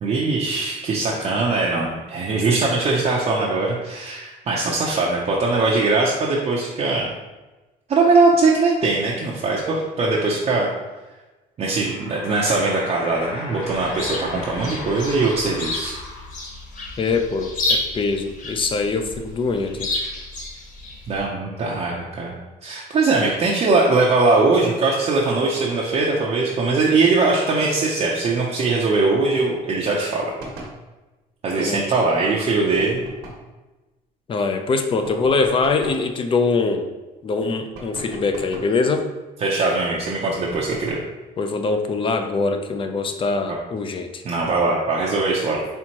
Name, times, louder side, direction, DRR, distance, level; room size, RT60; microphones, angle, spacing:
voice 1, 0.0-7.1 7.9-10.7 11.6-15.9 21.1-22.4 22.6-30.3 31.4-33.0 39.4-41.0 44.2-45.8, right 3 dB, 40° right, -4 dB, 0.6 m, -21 dB
sound 1, 11.6-16.7, left 3 dB, 80° left, 0.8 m, -37 dB
Chirp tweet, 13.6-21.2, left 2 dB, 50° left, 1.0 m, -30 dB
voice 2, 17.0-19.9 31.6-31.8 34.3-36.9 37.2-39.1 41.4-44.2, left 4 dB, 30° left, 6 dB, 0.5 m, -23 dB
sound 2, 30.4-30.8 32.7-33.5 35.0-36.1 37.7-38.8 40.5-41.1, right 2 dB, 90° right, 1.2 m, -38 dB
4.5 x 3.4 x 2.9 m, 1.1 s
cardioid pair, 110°, 17 cm